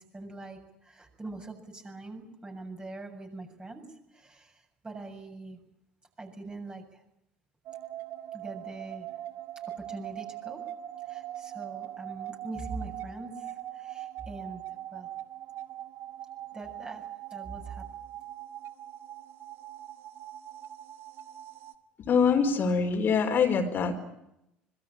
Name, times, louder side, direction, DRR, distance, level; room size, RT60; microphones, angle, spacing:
voice 1, 0.0-3.9 4.1-5.6 6.2-7.0 8.3-9.1 9.8-10.6 11.0-14.6 14.9-15.1 16.5-17.9, right 3 dB, 20° right, 3 dB, 7.2 m, -43 dB
sound 1, 7.7-21.8, right 12 dB, 50° right, 1.9 m, -41 dB
voice 2, 22.0-23.9, left 6 dB, 40° left, 4 dB, 4.3 m, -24 dB
26.0 x 22.0 x 8.9 m, 0.82 s
figure-of-eight pair, 60°, 5 cm